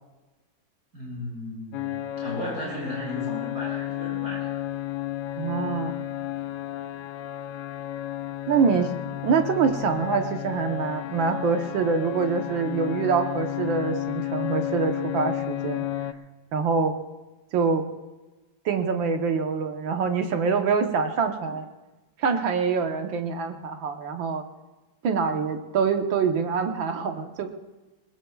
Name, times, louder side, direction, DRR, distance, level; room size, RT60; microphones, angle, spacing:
voice 1, 0.9-4.5, left 1 dB, 45° right, -5 dB, 6.7 m, -35 dB
sound 1, 1.7-16.1, left 13 dB, 70° left, 1.2 m, -32 dB
voice 2, 5.4-5.9 8.5-8.9 9.2-15.9 16.5-17.0 17.5-17.9 18.7-21.7 22.2-24.4 25.0-27.7, right 5 dB, 75° right, 5 dB, 1.9 m, -25 dB
21.0 x 20.0 x 2.4 m, 1.1 s
omnidirectional pair, 2.1 m